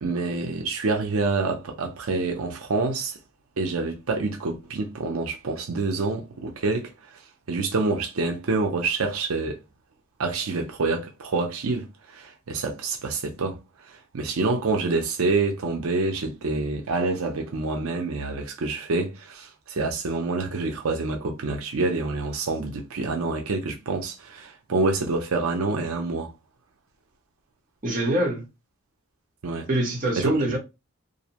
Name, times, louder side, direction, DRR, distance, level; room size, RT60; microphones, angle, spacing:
voice 1, 0.0-3.2 3.6-6.9 7.5-9.6 10.2-13.6 13.9-26.3 29.4-29.7 30.2-30.3, right 3 dB, 85° right, 0.6 m, -27 dB
voice 2, 27.8-28.4 29.7-30.6, right 1 dB, 40° right, 0.8 m, -24 dB
2.6 x 2.0 x 2.8 m
head